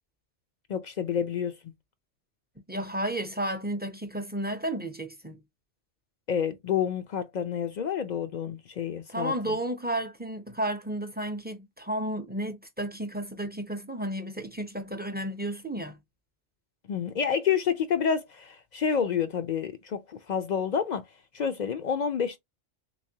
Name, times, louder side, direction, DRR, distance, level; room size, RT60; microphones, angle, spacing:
voice 1, 0.7-1.6 6.3-9.6 16.9-21.0 21.3-22.4, left 7 dB, 60° left, 0.4 m, -29 dB
voice 2, 2.7-5.4 9.1-16.0, right 1 dB, 15° right, 0.3 m, -32 dB
3.5 x 3.1 x 2.7 m
omnidirectional pair, 1.2 m